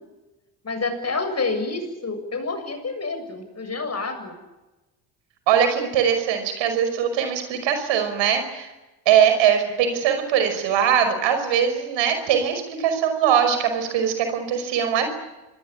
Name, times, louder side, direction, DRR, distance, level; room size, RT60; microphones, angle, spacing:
voice 1, 0.6-4.4, left 3 dB, 35° left, 7 dB, 7.3 m, -28 dB
voice 2, 5.5-8.7 9.1-15.1, right 8 dB, 70° right, 8 dB, 5.5 m, -21 dB
26.5 x 20.0 x 8.8 m, 1.1 s
hypercardioid pair, 55°, 46 cm